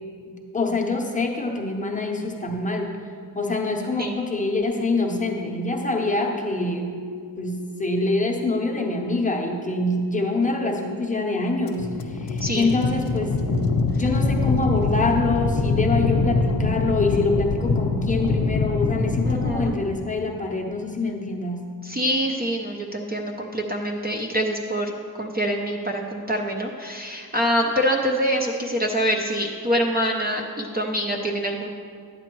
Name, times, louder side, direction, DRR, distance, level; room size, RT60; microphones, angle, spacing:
voice 1, 0.3-3.0 3.3-6.9 7.4-13.4 13.9-21.7, left 3 dB, 20° left, 1 dB, 0.7 m, -25 dB
sound 1, 4.8-5.3 5.7-6.2 6.7-7.1 7.6-8.1 8.5-9.0 9.5-10.0 10.4-10.9 11.3-11.8 12.3-12.8 13.2-13.7 14.2-14.6 15.1-15.6 16.0-16.5 17.0-17.5, right 1 dB, 80° right, 2.3 m, -38 dB
sound 2, 11.7-19.7, left 3 dB, 60° left, 0.8 m, -24 dB
voice 2, 19.2-19.8 21.8-31.7, equal, 25° right, 1 dB, 0.4 m, -25 dB
11.0 x 9.1 x 3.0 m, 2.2 s
wide cardioid pair, 160°, 40 cm